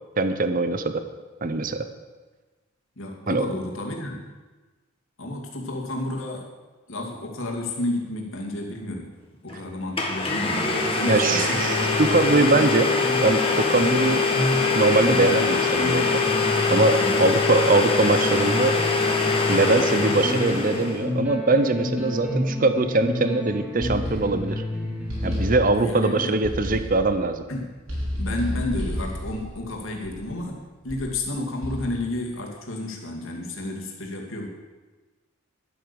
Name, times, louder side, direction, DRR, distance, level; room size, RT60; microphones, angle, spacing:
voice 1, 0.2-0.9 1.4-1.9 3.3-3.5 11.1-12.9 13.2-14.3 14.7-16.2 16.7-18.8 19.5-24.6 25.2-27.4, right 3 dB, 40° right, 10 dB, 0.7 m, -22 dB
voice 2, 3.0-4.3 5.2-6.5 6.9-9.2 9.4-11.6 16.9-17.3 25.8-26.4 27.5-27.7 28.2-34.5, left 2 dB, 75° left, 0 dB, 2.4 m, -31 dB
Domestic sounds home sounds, 9.5-9.6 10.0-21.0, left 4 dB, 25° left, 1.7 m, -23 dB
sound 1, 10.4-26.4, left 1 dB, 5° right, 2.4 m, -31 dB
sound 2, 23.8-24.7 25.1-26.0 26.4-27.2 27.9-30.4 30.9-31.2 31.6-32.1, equal, 75° right, 4.6 m, -31 dB
12.0 x 8.5 x 7.0 m, 1.2 s
head